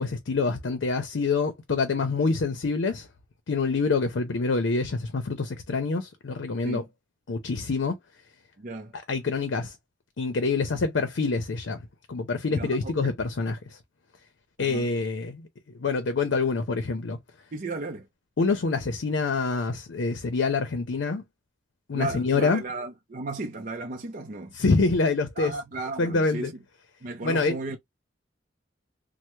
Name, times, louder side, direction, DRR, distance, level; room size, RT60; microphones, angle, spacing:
voice 1, 0.0-3.1 3.5-6.8 7.3-8.0 8.9-9.8 10.2-13.8 14.6-15.5 15.7-17.2 18.4-21.2 21.9-22.6 24.5-25.5 26.0-26.5 27.2-27.5, left 4 dB, 70° left, 0.5 m, -26 dB
voice 2, 8.6-8.9 12.5-13.1 14.6-14.9 17.5-18.1 21.9-24.5 25.4-26.5 27.0-27.8, right 3 dB, 45° right, 0.6 m, -35 dB
3.3 x 2.1 x 3.0 m
head